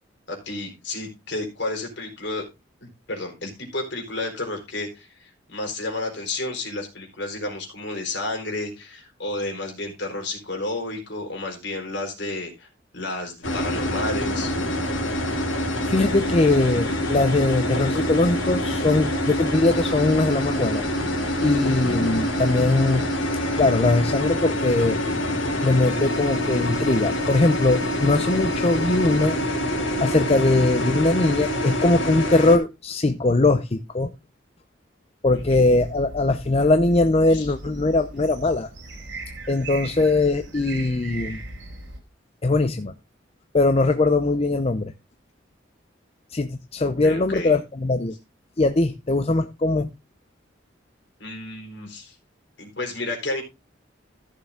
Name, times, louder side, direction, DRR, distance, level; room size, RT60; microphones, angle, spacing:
voice 1, 0.3-2.4 2.8-12.7 12.9-14.5 35.3-35.6 37.3-37.5 46.8-47.5 51.2-52.1 52.6-53.4, left 2 dB, 65° left, 4.4 m, -31 dB
sound 1, 13.4-32.6, left 1 dB, 85° left, 3.3 m, -26 dB
voice 2, 15.9-20.8 21.4-23.0 23.6-25.0 25.6-29.4 30.0-34.1 35.2-38.7 39.5-41.4 42.4-42.9 43.5-44.9 46.3-48.1 48.6-49.9, left 2 dB, 35° left, 0.6 m, -21 dB
sound 2, 35.3-42.0, right 2 dB, 65° right, 3.6 m, -38 dB
14.5 x 6.7 x 3.6 m
head